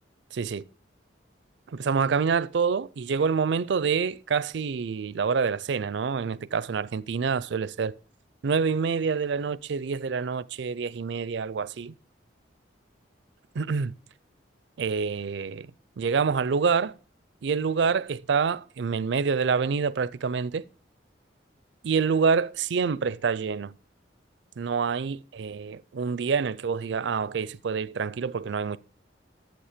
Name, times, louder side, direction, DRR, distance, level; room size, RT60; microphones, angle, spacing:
voice 1, 0.3-0.6 1.7-7.9 8.4-11.9 13.6-13.9 14.8-15.7 16.0-16.9 17.4-20.6 21.8-23.7 24.6-28.8, right 5 dB, 65° right, 0.4 m, -27 dB
11.5 x 7.7 x 5.0 m
head